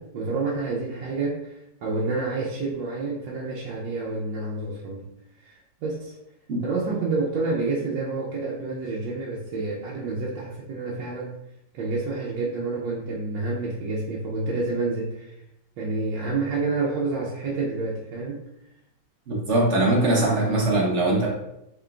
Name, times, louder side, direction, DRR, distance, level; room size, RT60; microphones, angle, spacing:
voice 1, 0.0-1.5 1.8-5.1 5.4-6.2 6.6-11.4 11.7-15.4 15.8-18.4, right 3 dB, 90° right, -4 dB, 1.3 m, -28 dB
voice 2, 19.3-21.3, right 2 dB, 55° right, -3 dB, 0.9 m, -21 dB
3.9 x 3.7 x 2.3 m, 0.83 s
omnidirectional pair, 2.0 m